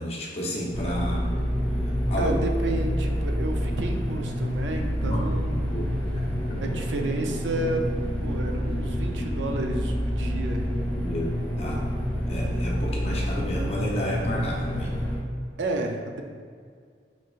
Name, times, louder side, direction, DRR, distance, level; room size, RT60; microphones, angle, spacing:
voice 1, 0.0-1.4 2.1-2.3 5.0-5.2 5.7-5.9 6.2-6.7 11.0-11.9 12.3-14.9, equal, 35° left, -2 dB, 0.7 m, -31 dB
sound 1, 0.7-15.2, equal, 10° left, 1.2 m, -28 dB
voice 2, 2.2-5.8 6.6-7.9 8.2-10.7 15.6-16.2, right 2 dB, 90° right, 4 dB, 0.5 m, -31 dB
4.6 x 4.5 x 2.4 m, 2.1 s
head